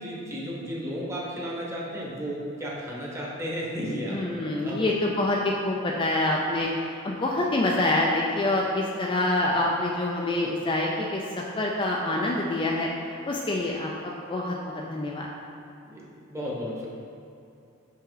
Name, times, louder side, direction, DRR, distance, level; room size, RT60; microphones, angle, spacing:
voice 1, 0.0-4.9 15.8-17.0, equal, 15° right, -5 dB, 1.1 m, -34 dB
voice 2, 4.1-15.3, left 2 dB, 25° left, -2 dB, 0.4 m, -26 dB
5.6 x 5.5 x 3.9 m, 2.6 s
head